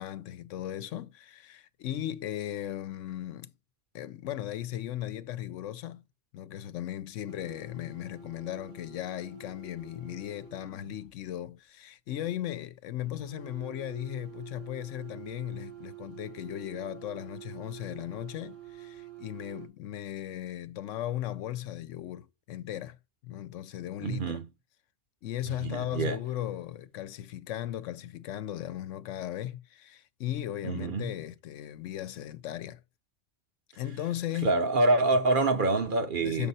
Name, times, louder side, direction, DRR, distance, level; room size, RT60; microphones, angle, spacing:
voice 1, 0.0-3.5 3.9-6.0 6.3-23.0 23.2-24.4 25.2-32.8 33.7-34.6 36.2-36.5, left 12 dB, 85° left, 1.0 m, -37 dB
sound 1, 7.3-11.1 13.0-19.7, right 8 dB, 80° right, 1.9 m, -48 dB
voice 2, 24.0-24.5 25.6-26.2 30.6-31.1 34.4-36.5, right 2 dB, 50° right, 0.8 m, -26 dB
6.5 x 5.4 x 4.0 m
omnidirectional pair, 1.2 m